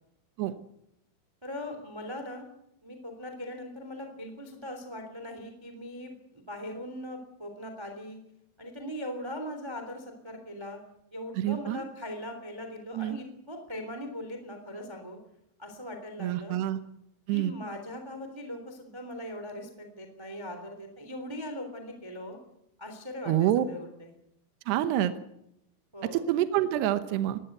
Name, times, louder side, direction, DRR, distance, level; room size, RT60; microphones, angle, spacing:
voice 1, 1.4-2.4 2.8-8.2 8.6-10.8 11.1-15.2 15.6-16.6 17.3-22.4 22.8-24.1 25.9-26.2, left 1 dB, 10° right, 5 dB, 1.9 m, -40 dB
voice 2, 11.3-11.8 12.9-13.2 16.2-16.8 17.3-17.5 23.3-23.6 24.7-25.1 26.1-27.4, right 12 dB, 75° right, 10 dB, 2.6 m, -27 dB
21.0 x 16.5 x 8.0 m, 0.80 s
omnidirectional pair, 5.8 m